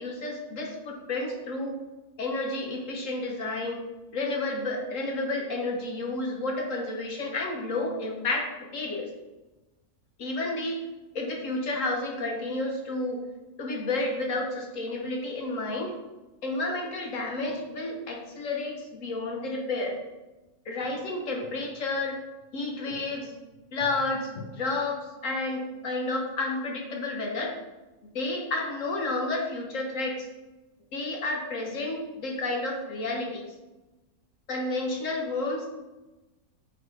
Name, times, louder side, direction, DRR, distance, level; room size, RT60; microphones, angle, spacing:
voice 1, 0.0-1.7 2.2-3.8 4.1-9.1 10.2-10.8 11.1-13.2 13.6-16.0 16.4-20.0 20.7-22.2 22.5-23.3 23.7-27.5 28.1-30.3 30.9-33.5 34.5-35.7, left 2 dB, 65° left, 1 dB, 1.2 m, -31 dB
8.2 x 4.1 x 3.2 m, 1.1 s
omnidirectional pair, 1.5 m